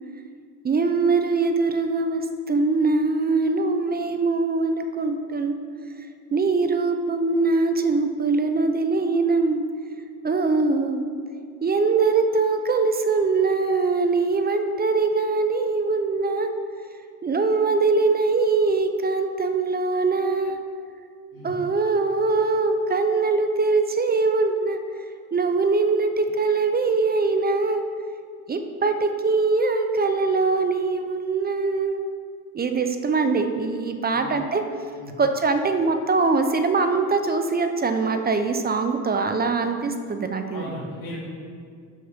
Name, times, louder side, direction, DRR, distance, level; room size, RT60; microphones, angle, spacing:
voice 1, 0.6-5.5 6.3-9.6 10.2-11.0 11.6-16.5 17.2-20.6 21.4-24.8 25.3-27.8 28.5-32.0 32.5-34.6 35.2-40.7, right 3 dB, 25° right, 7 dB, 0.5 m, -22 dB
voice 2, 40.5-41.2, left 1 dB, 65° left, -7 dB, 2.0 m, -36 dB
6.5 x 5.8 x 5.1 m, 2.2 s
cardioid pair, 100°, 39 cm